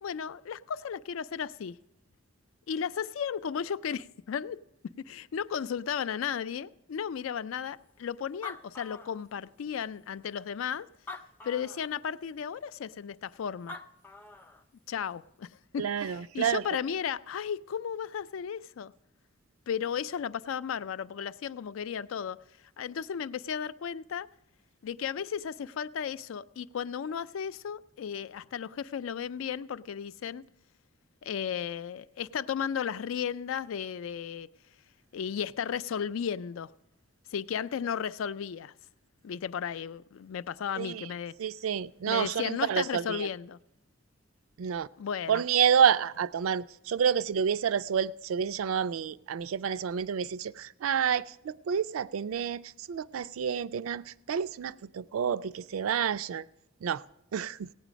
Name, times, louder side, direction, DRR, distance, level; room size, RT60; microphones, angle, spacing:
voice 1, 0.0-1.8 2.7-4.6 5.1-10.9 11.4-13.8 14.9-15.5 15.7-18.9 19.7-22.4 22.8-24.3 24.8-30.4 31.2-34.5 35.1-36.7 37.3-38.7 39.2-41.3 42.1-43.6 45.0-45.4, left 7 dB, 75° left, 0.4 m, -34 dB
Animal, 8.0-8.1 8.2-9.7 10.3-10.4 10.9-11.9 13.4-13.5 13.7-14.6, left 4 dB, 10° left, 0.4 m, -44 dB
voice 2, 15.8-16.6 40.8-41.1 41.4-43.3 44.6-44.9 45.3-56.5 56.8-57.0 57.3-57.7, right 8 dB, 85° right, 0.4 m, -29 dB
17.0 x 9.0 x 5.1 m
head